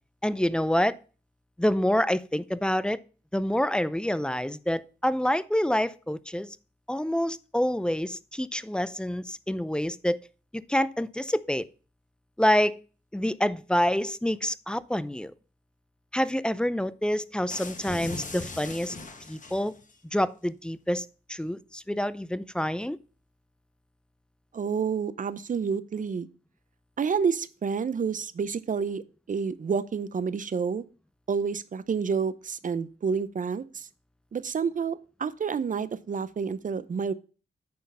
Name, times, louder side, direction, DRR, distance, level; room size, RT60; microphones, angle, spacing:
voice 1, 0.2-1.0 1.6-3.0 3.3-6.6 6.9-10.2 10.5-11.6 12.4-12.8 13.1-15.3 16.1-19.0 19.3-19.8 20.1-23.0, equal, 5° left, 0.5 m, -27 dB
sound 1, 17.5-20.0, left 3 dB, 45° left, 1.3 m, -40 dB
voice 2, 24.5-26.3 27.0-29.0 29.3-30.8 31.3-33.9 34.3-37.1, right 6 dB, 45° right, 0.6 m, -29 dB
9.4 x 4.4 x 5.4 m
wide cardioid pair, 100°, 18 cm